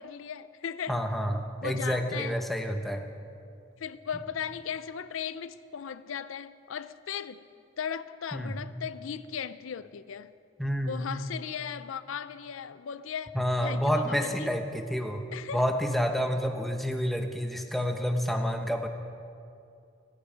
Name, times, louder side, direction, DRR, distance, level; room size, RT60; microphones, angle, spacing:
voice 1, 0.0-1.0 1.6-2.4 3.8-7.4 7.8-10.3 10.8-13.4 13.6-14.5 15.3-15.6, left 7 dB, 80° left, 0.5 m, -37 dB
voice 2, 0.9-3.0 8.3-8.6 10.6-11.1 13.3-15.2 15.5-18.9, equal, ahead, 0.9 m, -29 dB
16.5 x 15.0 x 5.1 m
head